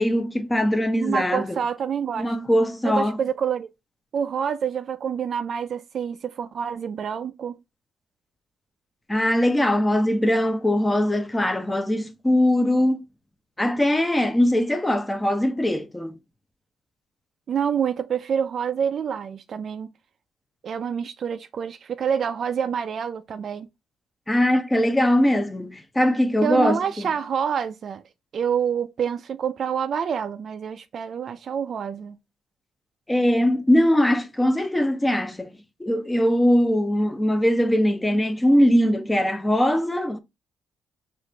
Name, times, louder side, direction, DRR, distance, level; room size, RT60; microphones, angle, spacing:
voice 1, 0.0-1.6 2.2-3.2 9.1-13.0 13.6-16.1 24.3-27.1 33.1-35.5 35.8-40.2, left 1 dB, 10° left, 0.6 m, -21 dB
voice 2, 1.0-2.4 2.8-3.7 4.1-7.6 17.5-19.9 20.6-23.7 26.4-28.0 28.3-32.2, right 7 dB, 55° right, 0.4 m, -27 dB
4.7 x 2.5 x 3.2 m
cardioid pair, 90°, 0 cm